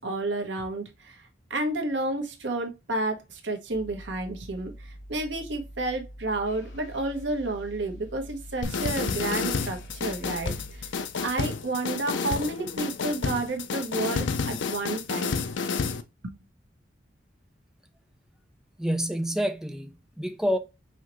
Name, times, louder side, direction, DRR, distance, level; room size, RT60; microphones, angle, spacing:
voice 1, 0.0-10.9 11.2-15.3 16.2-16.3, right 2 dB, 70° right, 1.2 m, -31 dB
sound 1, 3.7-10.9, equal, 45° left, 1.4 m, -45 dB
sound 2, 6.4-11.9, left 4 dB, 65° left, 1.3 m, -55 dB
sound 3, 8.6-16.0, left 5 dB, 80° left, 0.6 m, -30 dB
voice 2, 18.8-20.6, equal, 5° right, 0.5 m, -28 dB
5.6 x 2.8 x 3.0 m
head